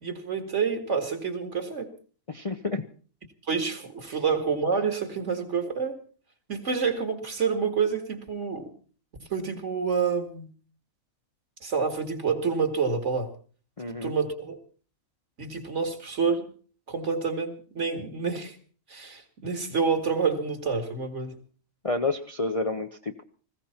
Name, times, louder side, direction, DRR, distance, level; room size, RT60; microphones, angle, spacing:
voice 1, 0.0-1.9 3.5-6.0 6.5-8.7 9.3-10.5 11.6-13.3 14.0-14.6 15.4-16.5 16.9-18.6 18.9-21.3, right 5 dB, 55° right, 7 dB, 2.3 m, -28 dB
voice 2, 2.3-2.8 4.1-4.2 13.8-14.1 21.8-23.2, left 3 dB, 35° left, 6 dB, 0.7 m, -30 dB
19.5 x 16.0 x 4.4 m, 0.42 s
omnidirectional pair, 1.5 m